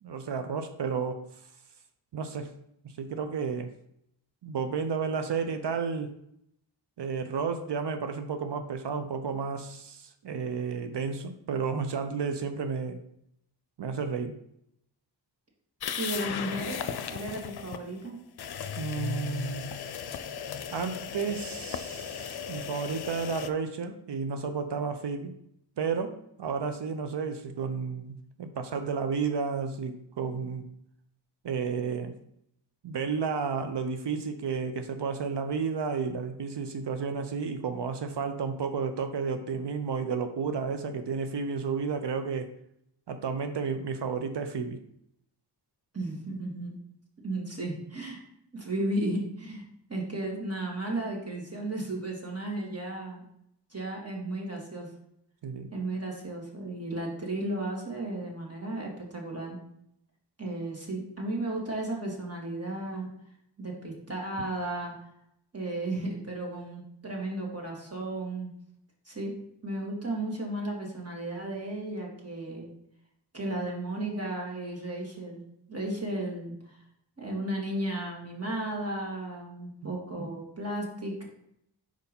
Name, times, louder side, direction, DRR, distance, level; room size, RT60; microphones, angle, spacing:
voice 1, 0.0-1.2 2.1-2.5 3.0-3.7 4.4-6.1 7.0-13.0 13.8-14.3 18.8-19.7 20.7-25.3 25.8-30.6 31.4-32.1 32.8-42.5 43.1-44.8 55.4-55.7 79.8-80.0, right 5 dB, 70° right, 7 dB, 0.7 m, -32 dB
sound 1, 15.8-17.8 18.4-23.5, left 7 dB, 60° left, 0.6 m, -36 dB
voice 2, 16.0-16.8 17.1-18.2 45.9-46.8 47.2-48.2 48.5-49.6 49.9-53.2 53.7-54.9 55.7-59.6 60.4-63.1 63.6-64.9 65.5-68.5 69.1-69.3 69.6-72.7 73.3-75.4 75.7-76.8 77.2-81.2, right 1 dB, 35° right, -1 dB, 2.3 m, -34 dB
4.6 x 4.6 x 5.3 m, 0.74 s
cardioid pair, 45°, 44 cm